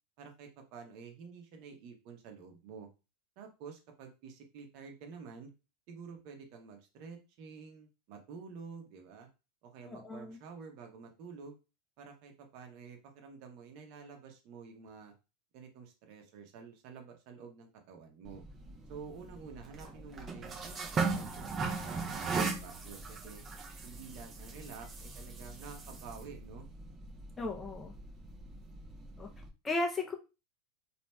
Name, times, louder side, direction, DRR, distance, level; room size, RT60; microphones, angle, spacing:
voice 1, 0.2-2.9 3.4-5.5 5.9-9.3 9.6-11.6 12.0-15.1 15.5-18.4 18.9-23.4 23.8-26.7, right 5 dB, 55° right, 4 dB, 0.9 m, -49 dB
voice 2, 9.9-10.4 27.4-27.9 29.2-29.3 29.6-30.1, left 2 dB, 15° left, 2 dB, 0.5 m, -35 dB
sound 1, 18.2-29.5, right 4 dB, 30° right, 0.6 m, -39 dB
3.0 x 2.5 x 2.2 m, 0.29 s
hypercardioid pair, 100°, 0 cm